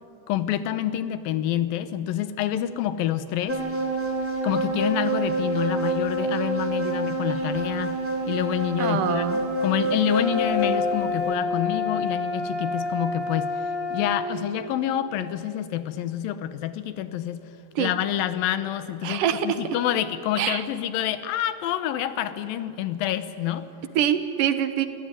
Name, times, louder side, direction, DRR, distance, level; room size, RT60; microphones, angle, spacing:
voice 1, 0.3-3.6 4.4-8.0 8.3-9.3 9.6-17.5 17.8-23.7, left 11 dB, 80° left, 13 dB, 2.7 m, -27 dB
sound 1, 3.5-11.0, right 1 dB, 5° right, 2.6 m, -27 dB
voice 2, 8.8-9.4 17.8-17.9 19.0-19.6 20.4-20.6 24.0-24.9, right 10 dB, 70° right, 11 dB, 2.6 m, -24 dB
sound 2, 10.1-14.3, left 3 dB, 20° left, 7.5 m, -28 dB
28.5 x 16.5 x 10.0 m, 2.8 s
omnidirectional pair, 4.1 m